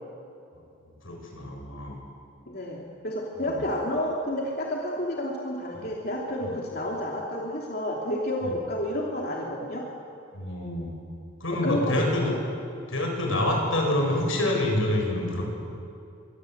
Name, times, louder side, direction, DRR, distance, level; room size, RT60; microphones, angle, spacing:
voice 1, 1.0-2.0 3.4-3.6 6.4-6.5 8.4-8.5 10.3-10.9 11.4-12.3 12.9-15.4, left 1 dB, 80° left, 1 dB, 7.5 m, -27 dB
voice 2, 2.5-9.9 11.5-12.4, left 1 dB, 50° left, -2 dB, 3.0 m, -30 dB
27.5 x 25.0 x 8.1 m, 2.7 s
head